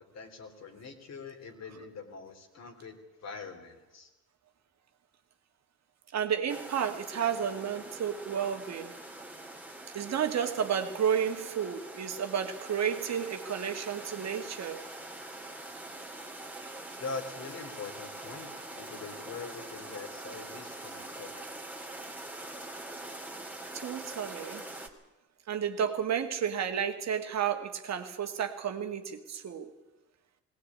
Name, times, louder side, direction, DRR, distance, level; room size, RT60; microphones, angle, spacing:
voice 1, 0.1-4.1 17.0-21.3, left 4 dB, 60° left, 4 dB, 3.6 m, -43 dB
voice 2, 6.1-8.9 9.9-14.8 23.7-24.6 25.5-29.7, right 8 dB, 60° right, 6 dB, 2.0 m, -32 dB
sound 1, 6.5-24.9, right 2 dB, 5° right, 2.7 m, -44 dB
18.5 x 18.5 x 8.7 m, 0.98 s
cardioid pair, 90°, 30 cm